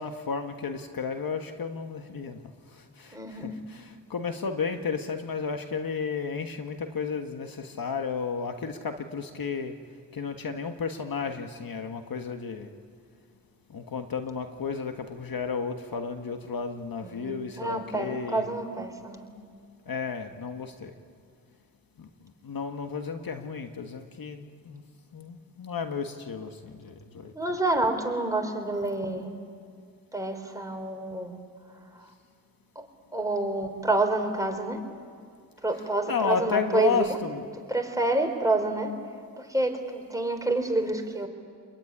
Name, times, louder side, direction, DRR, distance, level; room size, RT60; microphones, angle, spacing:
voice 1, 0.0-2.4 3.0-9.7 10.1-12.7 13.7-18.4 19.9-20.9 22.0-22.1 22.4-24.8 25.1-27.3 36.1-37.5, left 5 dB, 60° left, 6 dB, 1.6 m, -32 dB
voice 2, 3.1-3.6 17.0-19.3 27.3-29.3 30.1-31.4 33.1-34.8 35.6-37.1 37.7-38.9 39.4-41.3, right 2 dB, 10° right, 3 dB, 4.2 m, -28 dB
26.0 x 21.5 x 9.9 m, 2.2 s
cardioid pair, 55°, 40 cm